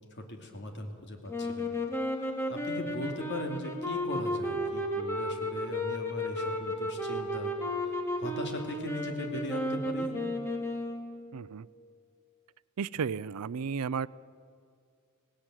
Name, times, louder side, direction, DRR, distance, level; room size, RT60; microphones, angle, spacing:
voice 1, 0.1-1.7 2.2-7.5 7.8-10.1, left 1 dB, 55° left, 4 dB, 2.6 m, -39 dB
sound 1, 1.3-11.3, left 1 dB, 10° left, 2.2 m, -33 dB
voice 2, 11.3-11.7 12.8-14.1, right 6 dB, 85° right, 19 dB, 0.5 m, -33 dB
18.0 x 17.5 x 9.1 m, 2.2 s
head